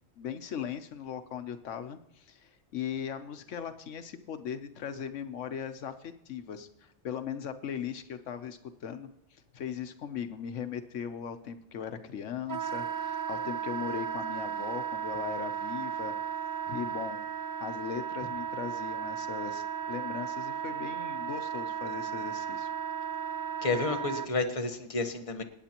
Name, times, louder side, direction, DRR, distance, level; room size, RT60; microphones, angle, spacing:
voice 1, 0.2-16.1 16.7-17.2 17.6-22.7, left 8 dB, 80° left, 9 dB, 1.2 m, -39 dB
Wind instrument woodwind instrument, 12.5-24.3, right 8 dB, 20° right, 0.5 m, -35 dB
voice 2, 23.6-25.4, left 3 dB, 30° left, 5 dB, 1.2 m, -30 dB
27.0 x 9.1 x 2.9 m, 0.86 s
omnidirectional pair, 1.2 m